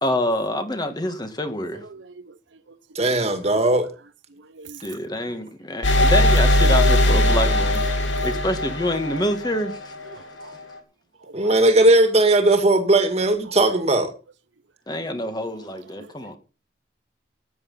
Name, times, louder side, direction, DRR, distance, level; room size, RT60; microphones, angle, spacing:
voice 1, 0.0-1.8 4.8-7.8 8.2-9.9 14.9-16.4, left 1 dB, 20° left, 1.8 m, -26 dB
voice 2, 1.9-2.3 4.6-4.8 10.1-10.5 11.3-11.5 16.0-16.1, right 4 dB, 80° right, 0.8 m, -43 dB
voice 3, 2.9-3.9 11.3-14.1, right 2 dB, 35° right, 2.2 m, -18 dB
sound 1, 5.8-9.6, left 1 dB, 85° left, 3.0 m, -18 dB
14.0 x 9.3 x 5.7 m
head